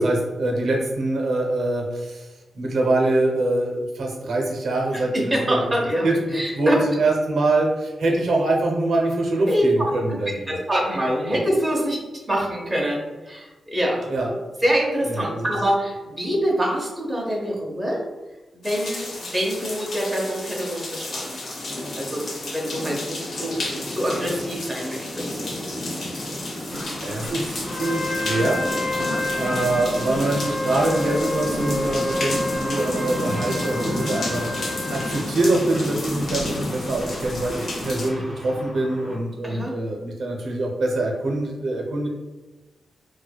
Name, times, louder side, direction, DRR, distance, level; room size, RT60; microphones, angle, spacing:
voice 1, 0.0-5.1 5.5-5.6 6.0-10.5 14.1-14.3 15.1-15.5 27.0-28.6 29.4-34.4 34.9-42.1, right 2 dB, 70° right, 0 dB, 0.6 m, -24 dB
voice 2, 4.9-6.8 9.5-9.6 10.5-12.0 12.3-14.1 14.6-18.0 18.5-25.6 29.0-29.2 39.4-39.7, equal, 10° right, -3 dB, 0.7 m, -25 dB
sound 1, 18.6-38.1, left 1 dB, 55° left, 0.7 m, -31 dB
sound 2, 26.7-39.2, equal, 20° left, 1.3 m, -38 dB
Trumpet, 27.7-35.3, left 2 dB, 85° left, 0.9 m, -29 dB
4.4 x 2.2 x 2.3 m, 1.2 s
wide cardioid pair, 170°, 0 cm